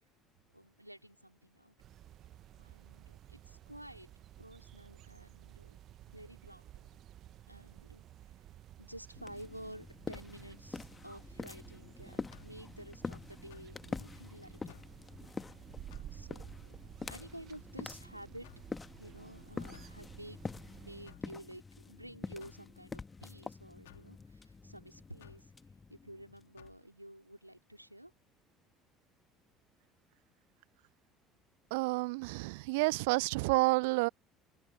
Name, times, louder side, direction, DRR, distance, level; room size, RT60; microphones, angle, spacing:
voice 1, 0.5-1.7 2.6-4.1 4.4-5.8 6.1-6.9 7.5-8.0 8.8-14.8 16.1-16.8 17.1-18.5 19.0-25.5 25.9-28.1, right 1 dB, 90° right, 4.5 m, -51 dB
sound 1, 1.8-21.2, right 12 dB, 45° right, 1.4 m, -54 dB
sound 2, 9.2-26.7, left 4 dB, 20° left, 1.6 m, -46 dB
sound 3, 12.3-12.6 13.5-13.8 14.7-15.0 15.9-16.2 17.1-17.4 18.4-18.7 19.7-20.0 21.1-21.3 22.4-22.7 23.8-24.1 25.2-25.5 26.6-26.8, left 16 dB, 65° left, 3.4 m, -58 dB
voice 2, 31.7-34.1, right 26 dB, 65° right, 0.6 m, -29 dB
figure-of-eight pair, 60°, 0 cm